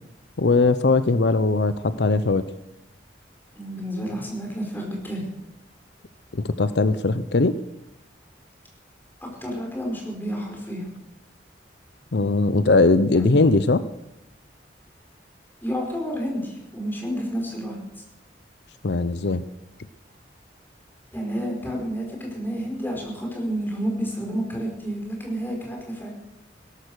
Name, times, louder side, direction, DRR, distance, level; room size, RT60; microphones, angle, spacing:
voice 1, 0.4-2.4 6.3-7.6 12.1-13.8 18.8-19.4, left 3 dB, 70° left, 13 dB, 0.7 m, -20 dB
voice 2, 3.5-5.3 9.2-10.9 13.1-13.4 15.6-17.8 21.1-26.1, equal, 10° left, 0 dB, 5.1 m, -30 dB
16.5 x 13.5 x 6.5 m, 0.87 s
head